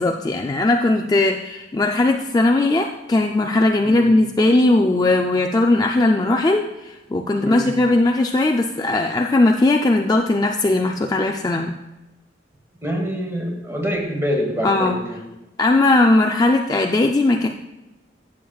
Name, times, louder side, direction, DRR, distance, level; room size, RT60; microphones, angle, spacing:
voice 1, 0.0-11.7 14.6-15.0 15.6-17.5, left 2 dB, 20° left, 3 dB, 0.3 m, -18 dB
voice 2, 12.8-15.3, equal, 15° right, 1 dB, 1.4 m, -25 dB
13.0 x 7.3 x 2.3 m, 1.0 s
head